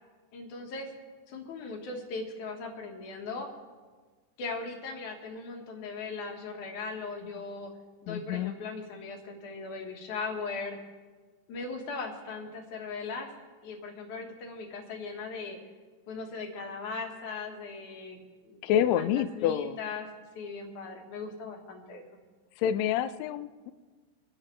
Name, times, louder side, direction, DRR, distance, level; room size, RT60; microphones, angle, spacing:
voice 1, 0.3-0.9 1.3-3.5 4.4-7.7 8.0-10.8 11.5-13.3 13.6-15.6 16.1-20.1 20.3-22.0, left 4 dB, 70° left, 2 dB, 3.0 m, -39 dB
voice 2, 8.1-8.5 18.6-19.8 22.6-23.7, left 10 dB, 85° left, 12 dB, 1.6 m, -28 dB
25.5 x 11.0 x 3.3 m, 1.4 s
omnidirectional pair, 3.8 m